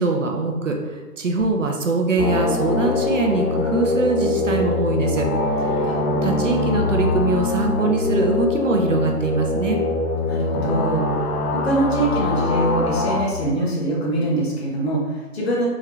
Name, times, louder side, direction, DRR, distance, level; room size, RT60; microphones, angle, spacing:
voice 1, 0.0-5.3 5.7-5.9 6.2-9.8, right 3 dB, 55° right, 2 dB, 0.6 m, -22 dB
sound 1, 2.2-13.2, left 2 dB, 70° left, 0.8 m, -23 dB
voice 2, 10.3-11.2 11.5-15.7, right 1 dB, 40° left, -4 dB, 1.1 m, -23 dB
3.6 x 3.2 x 3.2 m, 1.3 s
hypercardioid pair, 155°, 47 cm